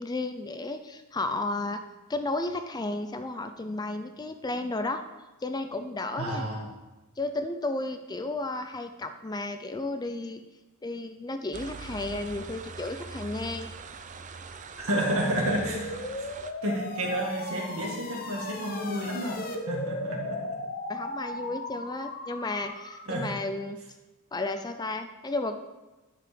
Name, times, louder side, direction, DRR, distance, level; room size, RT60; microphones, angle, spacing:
voice 1, 0.0-5.0 5.4-6.4 7.2-10.4 10.8-13.7 20.9-23.8 24.3-25.6, left 2 dB, 20° left, 8 dB, 0.4 m, -33 dB
voice 2, 6.2-6.7 14.8-16.3 16.6-20.6 23.1-23.4, right 1 dB, 65° right, 0 dB, 2.0 m, -31 dB
sound 1, 11.5-16.5, right 4 dB, 35° right, 0.5 m, -42 dB
sound 2, 15.7-23.2, left 2 dB, 40° left, 0.9 m, -37 dB
10.0 x 5.9 x 5.1 m, 1.1 s
head